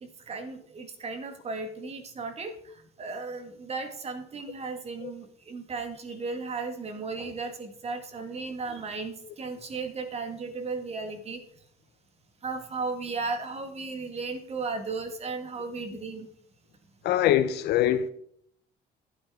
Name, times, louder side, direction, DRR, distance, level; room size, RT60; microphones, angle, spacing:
voice 1, 0.0-11.4 12.4-16.3, right 4 dB, 40° right, 1.9 m, -35 dB
voice 2, 17.0-18.1, left 11 dB, 75° left, 0.7 m, -23 dB
12.5 x 9.5 x 3.7 m
cardioid pair, 110°, 17 cm